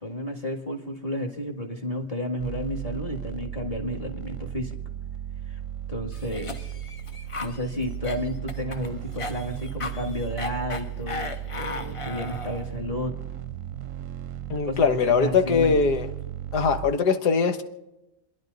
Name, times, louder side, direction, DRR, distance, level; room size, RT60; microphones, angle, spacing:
voice 1, 0.0-4.7 5.5-5.6 5.9-6.7 7.4-13.1 14.7-15.7, left 1 dB, 25° left, 2 dB, 1.8 m, -32 dB
sound 1, 2.4-16.9, right 11 dB, 60° right, 0.9 m, -35 dB
Cough, 6.1-12.7, left 3 dB, 40° left, 0.4 m, -36 dB
voice 2, 14.5-16.1 16.5-17.6, left 5 dB, 80° left, 7 dB, 1.8 m, -21 dB
30.0 x 11.0 x 4.0 m, 0.94 s
omnidirectional pair, 1.7 m